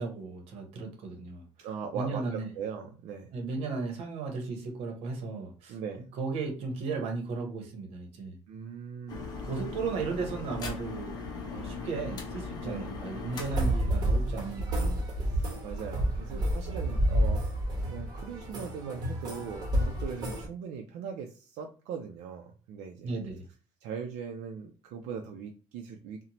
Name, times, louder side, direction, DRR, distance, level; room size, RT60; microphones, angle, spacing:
voice 1, 0.0-1.4 1.9-2.5 3.3-5.7 6.1-8.4 9.4-11.2 11.5-15.0 16.3-16.5 23.0-23.4, right 4 dB, 60° right, 3 dB, 0.8 m, -35 dB
voice 2, 1.6-3.3 5.7-6.1 8.5-9.3 12.6-12.9 15.3-17.4 17.8-23.1 23.8-26.3, right 6 dB, 80° right, 3 dB, 0.4 m, -40 dB
sound 1, 9.1-14.6, left 4 dB, 35° left, 0.6 m, -39 dB
sound 2, 13.3-20.5, right 1 dB, 35° right, 0.9 m, -29 dB
2.7 x 2.1 x 2.9 m, 0.38 s
cardioid pair, 175°, 11 cm